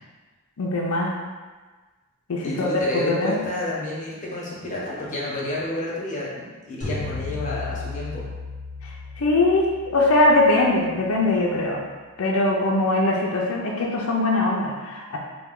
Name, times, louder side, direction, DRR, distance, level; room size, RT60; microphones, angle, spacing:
voice 1, 0.6-1.1 2.3-2.7 2.9-3.4 8.8-8.9 9.2-11.8 12.2-15.2, left 2 dB, 70° left, -2 dB, 0.5 m, -21 dB
voice 2, 2.4-8.2, left 1 dB, 35° left, -6 dB, 1.0 m, -30 dB
sound 1, 6.8-11.1, left 3 dB, 35° right, 1.1 m, -35 dB
4.3 x 2.2 x 3.6 m, 1.3 s
head